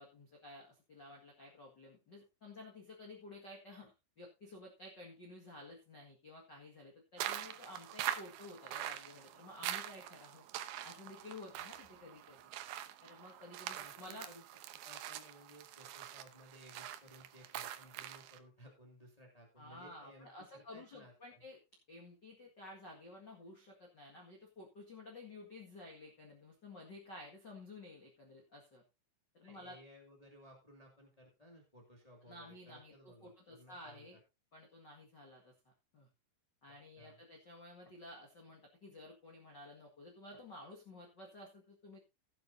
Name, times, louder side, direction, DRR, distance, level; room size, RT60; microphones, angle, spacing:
voice 1, 0.0-10.4 10.8-12.5 13.0-14.3 19.6-21.6 21.9-28.8 29.3-29.8 32.3-34.2 34.5-35.5 35.9-36.1 36.6-42.0, left 2 dB, 65° left, 0 dB, 1.0 m, -53 dB
sound 1, 7.2-18.4, right 12 dB, 75° right, 2.3 m, -44 dB
voice 2, 13.7-14.4 14.8-21.4 29.4-34.2 36.7-37.2, equal, 25° left, 0 dB, 0.7 m, -59 dB
16.0 x 9.3 x 2.7 m, 0.26 s
omnidirectional pair, 5.2 m